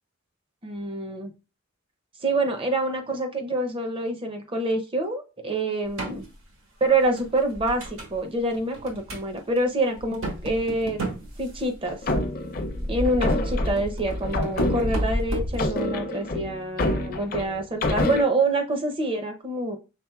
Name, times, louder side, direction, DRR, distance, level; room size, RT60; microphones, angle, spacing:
voice 1, 0.6-1.3 2.2-6.2 6.8-11.0 11.4-12.0 12.9-19.8, right 2 dB, 25° right, 5 dB, 0.6 m, -26 dB
sound 1, 5.8-6.2 6.8-8.2 8.5-9.3 9.6-9.7 10.0-11.9 12.6-15.6, equal, 75° right, 1.3 m, -31 dB
sound 2, 11.9-15.2 15.6-18.2, left 2 dB, 45° left, 0.6 m, -27 dB
5.8 x 3.4 x 2.3 m, 0.31 s
head